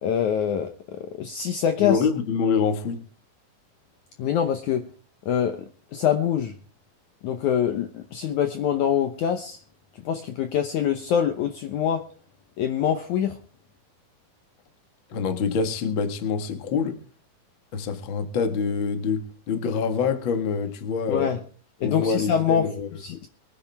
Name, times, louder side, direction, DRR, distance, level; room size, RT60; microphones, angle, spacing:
voice 1, 0.0-2.1 4.2-4.9 5.3-6.5 7.2-9.6 10.0-12.0 12.6-13.4 21.1-21.4 21.8-23.3, left 8 dB, 70° left, 6 dB, 2.0 m, -25 dB
voice 2, 1.8-3.0 15.1-17.0 17.7-21.3 21.8-22.9, left 5 dB, 45° left, 7 dB, 1.7 m, -26 dB
23.5 x 9.8 x 3.4 m, 0.39 s
omnidirectional pair, 4.3 m